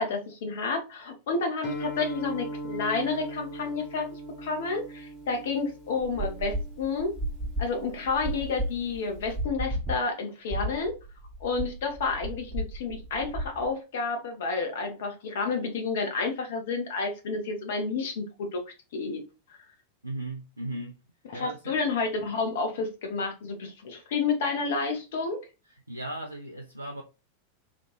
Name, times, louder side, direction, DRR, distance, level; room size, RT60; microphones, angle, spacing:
voice 1, 0.0-7.1 7.6-10.9 11.4-18.6 18.9-19.2 21.3-25.4, left 4 dB, 55° left, 1.0 m, -30 dB
Guitar, 1.6-9.4, right 1 dB, 35° left, 1.1 m, -40 dB
sound 1, 6.0-10.0 10.5-13.7, right 1 dB, 15° right, 0.9 m, -34 dB
voice 2, 20.0-21.0 21.3-21.8 25.7-27.0, right 1 dB, 85° right, 0.4 m, -37 dB
3.4 x 2.5 x 3.0 m
figure-of-eight pair, 90°, 0 cm